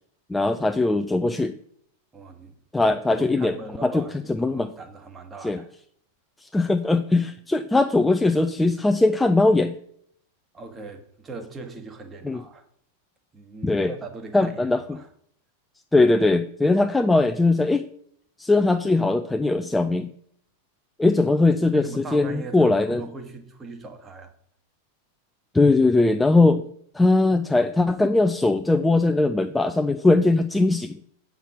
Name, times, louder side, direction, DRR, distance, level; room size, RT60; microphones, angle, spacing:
voice 1, 0.3-1.6 2.7-3.5 3.8-4.7 5.4-5.6 6.4-9.7 12.2-12.4 13.6-13.9 14.3-15.0 15.9-17.9 18.4-20.1 21.0-23.0 25.5-26.7 26.9-31.0, left 2 dB, 5° left, 0.4 m, -20 dB
voice 2, 2.1-4.1 4.4-5.7 10.5-12.7 13.3-15.1 21.7-24.3, right 3 dB, 20° right, 1.4 m, -40 dB
8.0 x 6.0 x 6.0 m
figure-of-eight pair, 90°, 0 cm